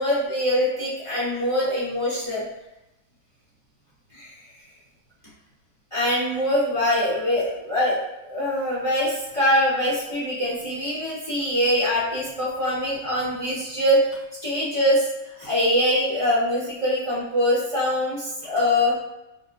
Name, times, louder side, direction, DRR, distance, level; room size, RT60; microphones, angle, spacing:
voice 1, 0.0-2.4 4.1-4.3 5.9-14.0 14.4-15.0 15.4-19.0, left 1 dB, 30° left, -9 dB, 0.5 m, -23 dB
4.6 x 2.1 x 2.4 m, 0.93 s
omnidirectional pair, 2.2 m